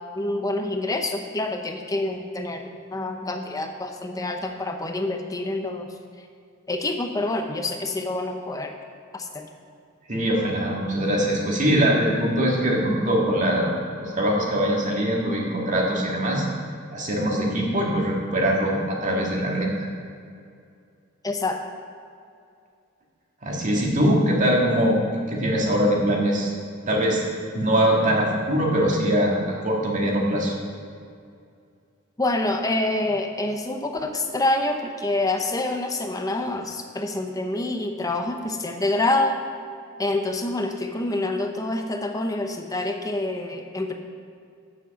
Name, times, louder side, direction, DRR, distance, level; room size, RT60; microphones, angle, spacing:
voice 1, 0.2-2.6 2.9-5.9 6.7-8.7 9.1-9.5 21.2-21.6 32.2-39.4 40.0-43.9, left 2 dB, 15° left, 4 dB, 0.6 m, -27 dB
voice 2, 10.1-13.7 14.0-16.5 16.9-19.9 23.4-25.0 25.3-26.5 26.9-27.2 27.5-30.5, equal, 40° right, -2 dB, 1.9 m, -22 dB
8.8 x 7.3 x 7.0 m, 2.4 s
head